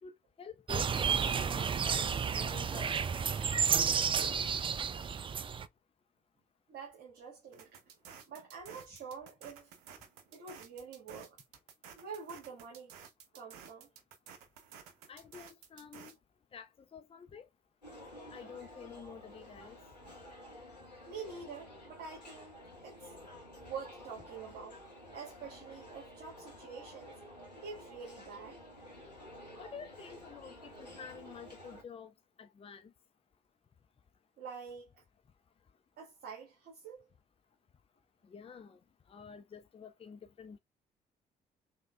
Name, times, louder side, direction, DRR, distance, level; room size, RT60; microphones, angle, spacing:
voice 1, 0.0-2.1 2.3-3.1 3.9-4.6 15.1-16.1 16.5-17.4 18.3-19.8 29.6-32.1 32.4-32.9 38.2-38.8 39.1-40.6, left 6 dB, 30° left, 0.7 m, -49 dB
sound 1, 0.7-5.7, right 6 dB, 25° right, 0.4 m, -31 dB
voice 2, 6.7-7.8 8.3-9.7 10.3-11.4 11.9-13.0 13.3-13.9 21.0-23.1 23.6-24.8 25.1-27.2 27.5-28.6 34.4-35.0 36.0-37.1, right 5 dB, 55° right, 1.5 m, -47 dB
sound 2, 7.5-16.1, right 7 dB, 70° right, 0.9 m, -54 dB
sound 3, 17.8-31.8, left 1 dB, 90° left, 1.2 m, -52 dB
4.8 x 3.7 x 2.2 m
figure-of-eight pair, 45°, 21 cm